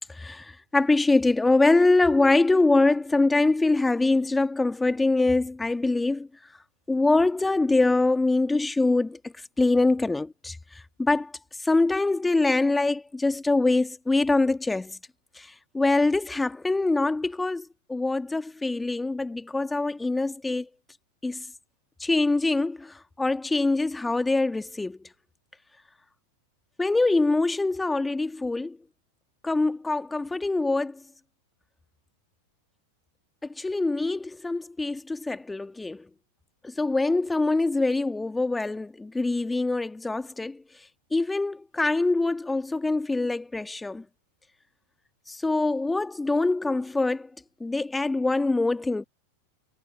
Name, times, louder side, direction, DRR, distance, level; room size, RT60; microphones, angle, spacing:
voice 1, 0.2-6.3 6.9-10.6 11.0-11.3 11.6-15.0 15.4-15.5 15.7-20.7 21.2-21.4 22.0-25.0 26.8-28.8 29.4-31.0 33.6-36.0 36.6-40.6 41.1-44.0 45.3-47.3 47.6-49.0, left 2 dB, 10° left, 1.8 m, -24 dB
figure-of-eight pair, 90°, 0 cm